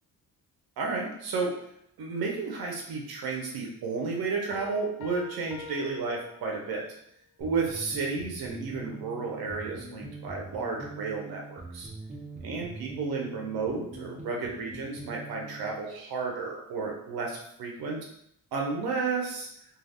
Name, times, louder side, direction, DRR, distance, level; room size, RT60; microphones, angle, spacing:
voice 1, 0.8-1.6 2.0-6.8 7.4-11.9 12.4-18.0 18.5-19.5, right 4 dB, 85° right, 0 dB, 0.7 m, -32 dB
Piano, 4.5-7.0, left 4 dB, 80° left, 0.6 m, -46 dB
sound 1, 7.4-15.8, right 3 dB, 20° right, 0.6 m, -43 dB
2.3 x 2.3 x 3.4 m, 0.73 s
cardioid pair, 95°, 36 cm